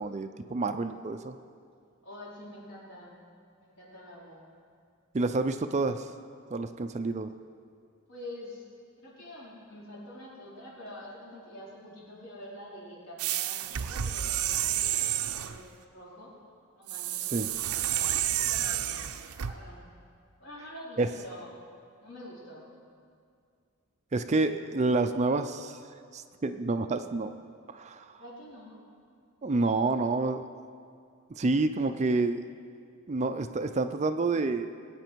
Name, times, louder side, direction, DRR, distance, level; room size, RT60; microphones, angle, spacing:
voice 1, 0.0-1.3 5.1-6.1 6.5-7.3 17.3-17.5 21.0-21.1 24.1-25.8 26.1-27.3 27.7-28.2 29.4-30.4 31.4-32.4 33.1-34.7, right 3 dB, 30° right, 9 dB, 0.4 m, -28 dB
voice 2, 2.0-3.2 3.6-4.5 8.1-8.6 9.0-16.3 16.7-19.0 19.3-19.8 20.4-21.5 22.0-22.7 28.1-28.9 29.5-30.0, left 1 dB, 55° left, -6 dB, 4.2 m, -46 dB
sound 1, 13.2-15.6 16.9-19.5, right 11 dB, 75° right, 0.6 m, -30 dB
21.0 x 8.8 x 4.6 m, 2.2 s
head